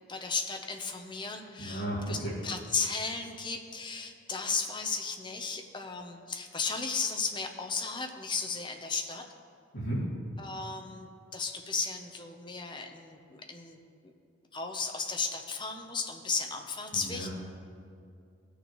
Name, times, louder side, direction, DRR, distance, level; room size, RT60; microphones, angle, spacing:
voice 1, 0.1-2.2 2.4-9.2 10.4-14.1 14.5-17.3, left 4 dB, 25° left, 3 dB, 0.7 m, -35 dB
voice 2, 1.6-2.4 9.7-10.1 16.9-17.3, right 1 dB, 60° left, -11 dB, 2.6 m, -34 dB
17.5 x 6.6 x 3.1 m, 2.3 s
head